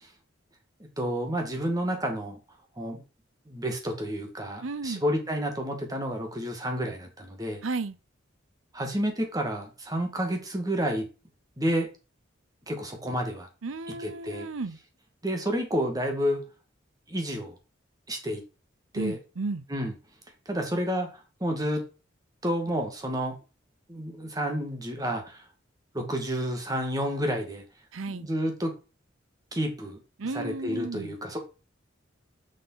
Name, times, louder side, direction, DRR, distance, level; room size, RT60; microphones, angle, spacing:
voice 1, 1.0-2.4 2.8-3.0 3.5-7.6 8.7-11.1 11.6-11.9 12.7-13.5 14.0-14.5 15.2-16.4 17.1-17.6 18.1-18.4 18.9-19.2 19.7-19.9 20.5-21.8 22.4-23.4 23.9-25.4 25.9-27.6 28.1-28.7 29.5-30.0 30.3-31.4, equal, 20° right, 2.0 m, -30 dB
voice 2, 4.6-5.0 7.6-8.0 13.6-14.8 18.9-19.6 27.9-28.3 30.2-31.1, right 3 dB, 85° right, 0.7 m, -33 dB
6.6 x 5.6 x 5.6 m
head